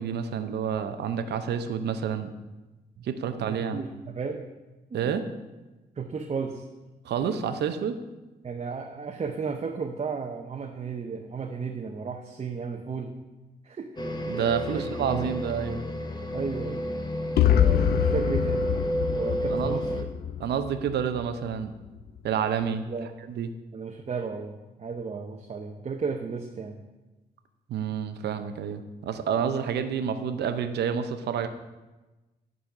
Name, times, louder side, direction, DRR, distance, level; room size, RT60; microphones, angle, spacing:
voice 1, 0.0-2.3 3.0-3.8 4.9-5.3 7.0-7.9 14.3-15.8 19.5-20.1 20.4-21.7 22.2-22.9 23.3-23.5 27.7-31.5, right 7 dB, 85° right, 9 dB, 0.7 m, -29 dB
voice 2, 3.4-4.4 5.0-5.1 6.0-6.6 8.4-13.1 13.6-14.0 14.7-15.3 16.3-16.8 17.4-18.7 19.1-19.9 22.9-23.1 23.7-26.8, right 5 dB, 40° right, 3 dB, 0.8 m, -34 dB
sound 1, 14.0-20.0, equal, 25° left, 0.9 m, -31 dB
sound 2, 17.4-21.3, left 10 dB, 70° left, 0.4 m, -25 dB
11.5 x 4.1 x 5.9 m, 1.1 s
cardioid pair, 85°, 17 cm